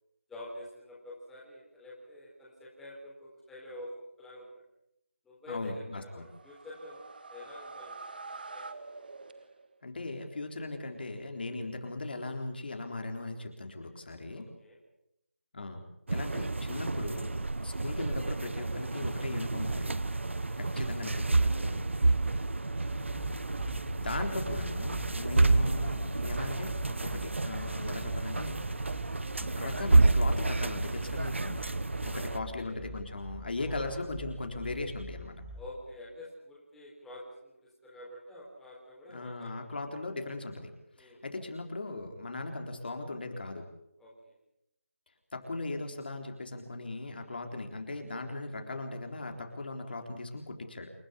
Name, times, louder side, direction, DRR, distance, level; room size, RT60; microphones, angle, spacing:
voice 1, 0.3-4.6 5.2-8.7 14.3-14.8 16.1-16.2 20.4-20.6 22.7-22.9 32.0-32.9 33.6-34.0 35.5-39.8 40.9-41.2 44.0-44.3 48.7-48.8, left 1 dB, 5° left, -5 dB, 4.1 m, -48 dB
voice 2, 5.5-6.2 9.8-14.5 15.5-15.8 16.1-17.3 17.6-20.0 20.6-21.9 24.0-28.9 29.4-31.6 32.0-35.4 39.1-40.7 41.0-43.7 45.3-50.9, left 2 dB, 45° left, 4 dB, 3.8 m, -38 dB
sound 1, 6.1-9.9, right 3 dB, 45° right, 1.5 m, -46 dB
sound 2, 16.1-32.4, right 2 dB, 65° right, 1.2 m, -29 dB
sound 3, 22.8-35.6, left 1 dB, 15° right, 4.8 m, -47 dB
28.5 x 13.0 x 9.8 m, 0.82 s
figure-of-eight pair, 165°, 7 cm